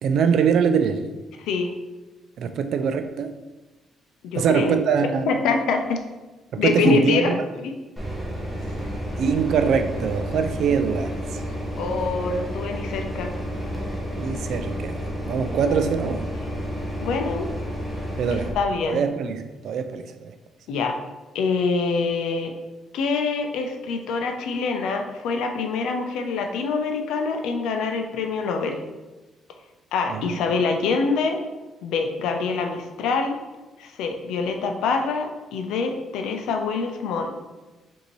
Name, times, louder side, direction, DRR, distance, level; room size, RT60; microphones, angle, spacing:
voice 1, 0.0-1.1 2.4-3.3 4.3-5.3 6.5-7.4 9.2-11.2 14.2-16.3 18.2-18.5 18.8-20.3 30.1-30.4, right 6 dB, 55° right, 0.3 m, -23 dB
voice 2, 1.4-1.7 4.2-4.8 5.3-6.0 6.6-7.4 7.6-7.7 11.8-13.3 15.7-16.0 16.4-16.5 17.0-17.5 18.5-19.0 20.7-20.9 21.3-22.5 22.9-28.8 29.9-31.4 31.8-33.4 33.8-37.3, left 4 dB, 90° left, 0.5 m, -25 dB
sound 1, 8.0-18.5, equal, ahead, 0.8 m, -31 dB
5.2 x 2.7 x 3.1 m
cardioid pair, 165°, 0 cm